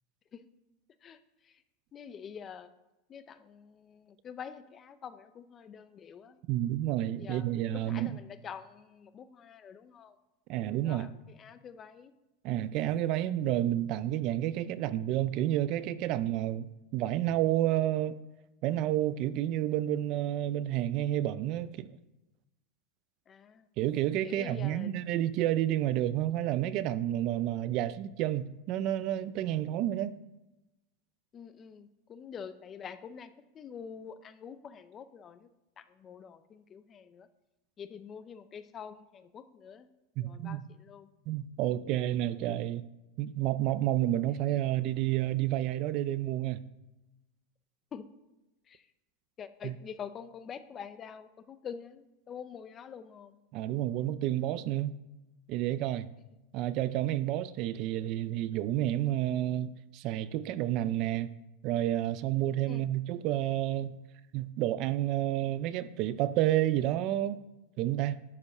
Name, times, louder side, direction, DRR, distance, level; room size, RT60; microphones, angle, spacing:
voice 1, 1.0-1.6 1.9-2.7 3.1-6.4 7.2-10.2 10.8-12.1 23.3-23.7 24.2-24.9 31.3-35.5 35.8-37.3 37.8-39.9 40.2-41.1 47.9-48.1 48.7-48.9 49.4-53.4 62.7-62.9, left 7 dB, 20° left, 0.6 m, -46 dB
voice 2, 6.5-8.1 10.5-11.1 12.4-16.7 16.9-18.2 18.6-21.9 23.8-30.1 40.2-40.6 41.3-42.9 43.2-46.6 49.6-49.7 53.5-54.9 55.5-56.1 56.5-61.3 61.6-64.0 64.3-67.4 67.8-68.2, right 13 dB, 35° right, 0.4 m, -30 dB
11.5 x 5.3 x 6.7 m
supercardioid pair, 170°, 0 cm